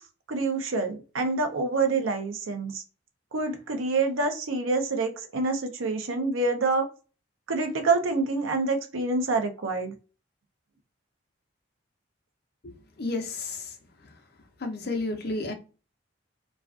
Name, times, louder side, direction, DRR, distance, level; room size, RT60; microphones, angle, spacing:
voice 1, 0.3-2.8 3.3-6.9 7.5-9.9, right 3 dB, 85° right, 0.6 m, -27 dB
voice 2, 12.6-13.7 14.0-14.1 14.6-15.5, left 2 dB, 50° left, 0.6 m, -32 dB
2.4 x 2.3 x 2.4 m
head